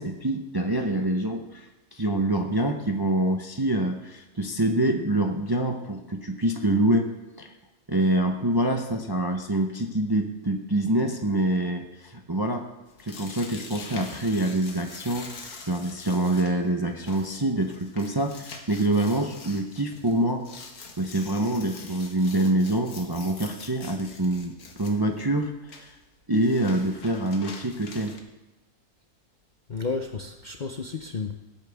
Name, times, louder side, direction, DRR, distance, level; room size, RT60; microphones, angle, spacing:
voice 1, 0.0-7.1 7.4-7.5 7.9-12.7 13.0-15.3 15.7-20.4 21.0-25.9 26.3-28.1, right 1 dB, 25° right, 4 dB, 0.5 m, -26 dB
sound 1, 12.9-28.2, left 4 dB, 75° left, 1.8 m, -45 dB
voice 2, 29.7-31.3, left 4 dB, 45° left, 4 dB, 0.6 m, -32 dB
18.5 x 8.7 x 3.5 m, 1.1 s
omnidirectional pair, 1.6 m